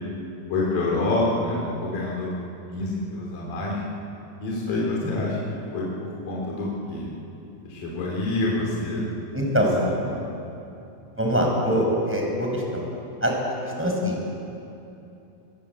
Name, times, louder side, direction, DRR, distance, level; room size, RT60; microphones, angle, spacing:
voice 1, 0.5-2.4 2.7-3.8 4.4-5.4 5.7-7.1 7.6-9.0 10.0-10.2, left 2 dB, 65° left, -4 dB, 5.1 m, -27 dB
voice 2, 4.6-5.1 8.9-9.0 9.3-9.7 11.2-12.9 13.2-14.2, equal, 5° right, 0 dB, 5.5 m, -24 dB
25.0 x 23.5 x 8.4 m, 2.8 s
omnidirectional pair, 4.2 m